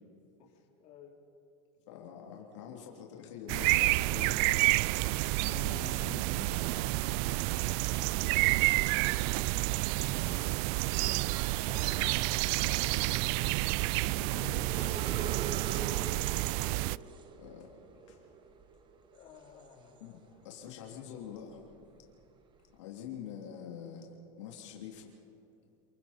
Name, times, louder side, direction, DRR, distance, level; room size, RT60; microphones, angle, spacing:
voice 1, 0.4-1.2 2.3-2.5 5.8-6.0 7.3-9.3 10.8-13.1 14.3-14.8 16.0-16.7 17.9-18.0 19.1-20.5, left 7 dB, 45° left, -1 dB, 3.8 m, -56 dB
voice 2, 1.9-4.8 5.4-6.7 10.1-10.5 14.1-14.9 17.4-17.7 18.1-18.2 20.0-20.2 20.4-21.9 22.8-24.1 24.4-25.1, left 8 dB, 80° left, -1 dB, 3.2 m, -46 dB
sound 1, 3.5-17.0, right 21 dB, 55° right, 0.4 m, -29 dB
Organ, 4.6-15.3, right 4 dB, 85° right, 2.5 m, -51 dB
sound 2, 11.3-20.4 20.9-22.6, right 5 dB, 30° right, 1.5 m, -46 dB
28.5 x 22.5 x 4.4 m, 2.7 s
supercardioid pair, 125°, 15 cm